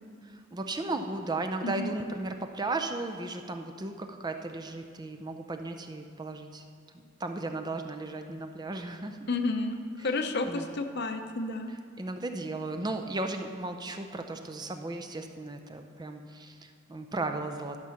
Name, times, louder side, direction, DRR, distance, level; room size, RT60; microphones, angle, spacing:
voice 1, 0.2-6.6 7.2-9.3 10.0-10.2 10.5-10.7 11.7-17.8, right 2 dB, 20° right, 6 dB, 0.5 m, -35 dB
voice 2, 9.3-9.8 10.0-11.7, left 3 dB, 55° left, 6 dB, 0.7 m, -31 dB
12.0 x 6.0 x 5.7 m, 2.2 s
head